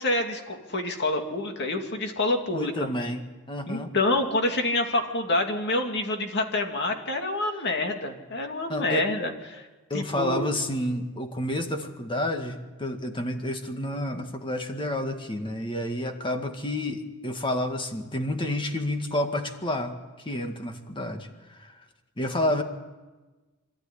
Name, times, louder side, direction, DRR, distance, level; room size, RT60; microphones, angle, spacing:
voice 1, 0.0-2.9 3.7-9.7 9.9-10.5, left 2 dB, 50° left, 4 dB, 2.4 m, -27 dB
voice 2, 2.5-3.2 3.5-3.9 8.7-9.0 9.9-19.9 20.2-21.7 22.2-22.6, left 1 dB, 25° left, 5 dB, 1.9 m, -30 dB
26.0 x 13.0 x 9.9 m, 1.2 s
head